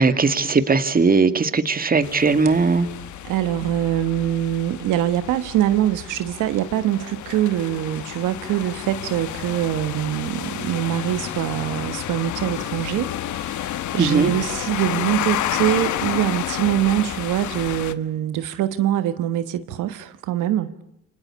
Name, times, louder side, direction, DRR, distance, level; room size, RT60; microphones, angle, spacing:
voice 1, 0.0-2.9 14.0-14.3, right 4 dB, 30° right, 2.0 m, -18 dB
sound 1, 2.0-17.9, left 12 dB, 75° left, 1.2 m, -30 dB
voice 2, 3.2-20.7, right 12 dB, 90° right, 1.3 m, -24 dB
28.0 x 25.0 x 8.5 m
cardioid pair, 90°, 30 cm